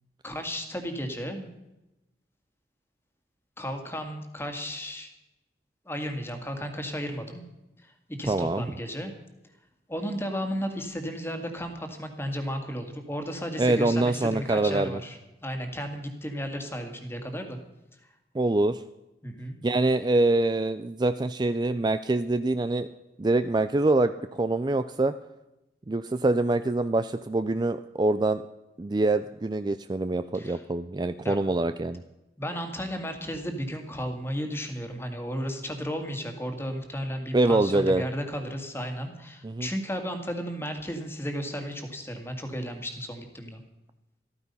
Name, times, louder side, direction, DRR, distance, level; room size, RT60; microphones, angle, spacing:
voice 1, 0.2-1.5 3.6-5.1 5.9-7.4 7.8-9.1 9.9-17.6 19.2-19.6 30.3-30.6 31.2-31.4 32.4-43.6, equal, 15° left, 5 dB, 1.9 m, -34 dB
voice 2, 8.3-8.6 13.6-15.0 18.3-18.8 19.6-22.9 23.2-25.1 25.9-28.4 28.8-32.0 37.3-38.0 39.4-39.7, right 2 dB, 25° right, 11 dB, 0.4 m, -25 dB
14.0 x 14.0 x 5.5 m, 0.97 s
head